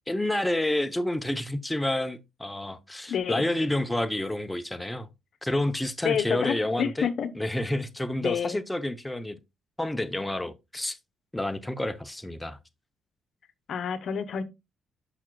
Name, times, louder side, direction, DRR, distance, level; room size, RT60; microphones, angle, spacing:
voice 1, 0.1-5.1 5.4-7.1 7.4-9.4 9.8-11.0 11.3-12.6, left 1 dB, 10° left, 0.6 m, -29 dB
voice 2, 3.1-3.4 6.0-7.3 8.2-8.6 13.7-14.4, left 7 dB, 60° left, 0.9 m, -28 dB
11.0 x 5.9 x 2.2 m
cardioid pair, 90°, 0 cm